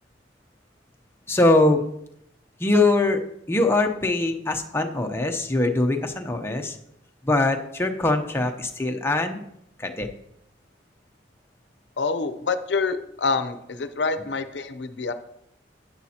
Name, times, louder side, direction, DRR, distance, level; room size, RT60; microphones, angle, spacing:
voice 1, 1.3-1.9 2.6-3.2 3.5-6.8 7.3-9.4 9.8-10.1, left 2 dB, 15° left, 3 dB, 0.7 m, -22 dB
voice 2, 12.0-15.1, left 4 dB, 70° left, 11 dB, 0.7 m, -26 dB
10.5 x 9.4 x 2.9 m, 0.75 s
head